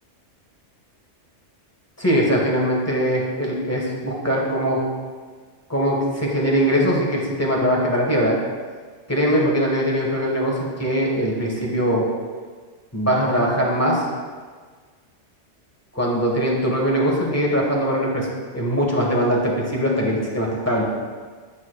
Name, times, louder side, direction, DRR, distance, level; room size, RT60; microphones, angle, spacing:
voice 1, 2.0-4.9 5.7-8.4 9.1-12.0 12.9-14.1 15.9-18.3 18.5-20.8, equal, 15° left, -3 dB, 1.4 m, -21 dB
8.7 x 8.3 x 2.4 m, 1.5 s
omnidirectional pair, 1.3 m